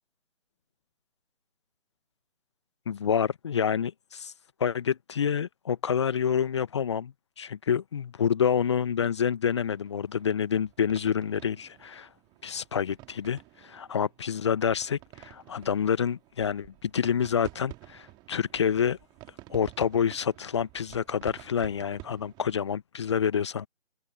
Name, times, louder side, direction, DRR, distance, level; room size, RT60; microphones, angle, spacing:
voice 1, 2.9-4.3 4.6-12.1 12.4-19.0 19.5-23.7, left 7 dB, 25° left, 1.1 m, -28 dB
sound 1, 9.5-22.6, right 20 dB, 10° right, 2.8 m, -51 dB
figure-of-eight pair, 150°, 37 cm